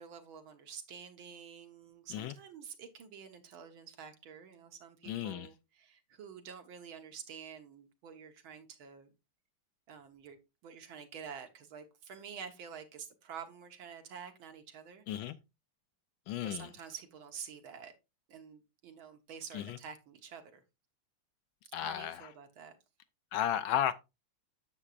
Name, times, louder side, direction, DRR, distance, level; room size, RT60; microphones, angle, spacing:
voice 1, 0.0-9.1 9.9-10.4 10.6-15.0 16.4-17.9 18.3-20.6 21.8-22.7, right 7 dB, 70° right, 1.9 m, -48 dB
voice 2, 5.1-5.5 15.1-15.4 16.3-16.7 19.5-19.8 21.7-22.3 23.3-23.9, left 10 dB, 75° left, 1.2 m, -34 dB
9.8 x 7.1 x 2.4 m
omnidirectional pair, 2.4 m